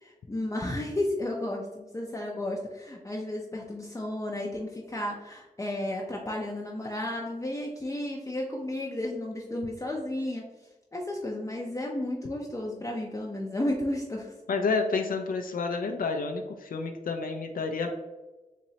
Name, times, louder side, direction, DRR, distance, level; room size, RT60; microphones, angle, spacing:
voice 1, 0.0-10.4 10.9-14.3, left 1 dB, 20° left, -1 dB, 0.5 m, -33 dB
voice 2, 14.5-17.9, left 4 dB, 80° left, 4 dB, 0.4 m, -29 dB
4.0 x 3.0 x 2.7 m, 1.1 s
wide cardioid pair, 70°, 14 cm